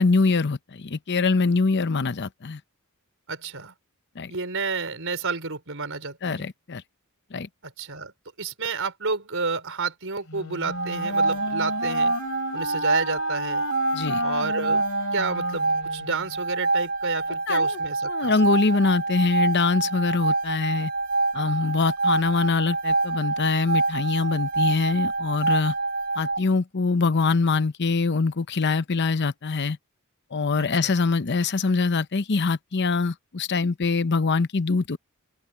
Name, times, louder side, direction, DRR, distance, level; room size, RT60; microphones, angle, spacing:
voice 1, 0.0-2.6 4.2-4.3 6.2-6.8 7.3-7.5 13.9-14.2 17.5-17.8 18.0-20.9 21.3-25.7 26.2-29.8 30.3-35.0, left 4 dB, 50° left, 0.7 m, -24 dB
voice 2, 3.3-3.7 4.3-6.5 7.6-8.1 8.4-12.1 12.5-13.6 14.2-14.8 15.1-18.4 30.6-30.9, right 4 dB, 60° right, 5.1 m, -31 dB
Wind instrument woodwind instrument, 10.3-16.4, left 2 dB, 65° left, 3.2 m, -33 dB
sound 1, 10.6-26.4, right 3 dB, 40° right, 0.7 m, -26 dB
open air
head